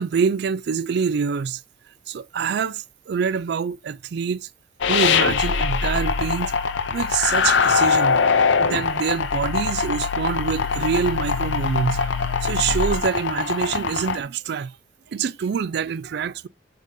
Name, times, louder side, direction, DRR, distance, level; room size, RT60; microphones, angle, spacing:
voice 1, 0.0-1.6 2.1-4.5 4.9-6.5 6.9-8.3 8.6-14.8 15.1-16.5, right 6 dB, 60° right, 0.4 m, -25 dB
sound 1, 4.8-14.2, left 5 dB, 80° left, 0.7 m, -22 dB
6.5 x 5.0 x 3.7 m
head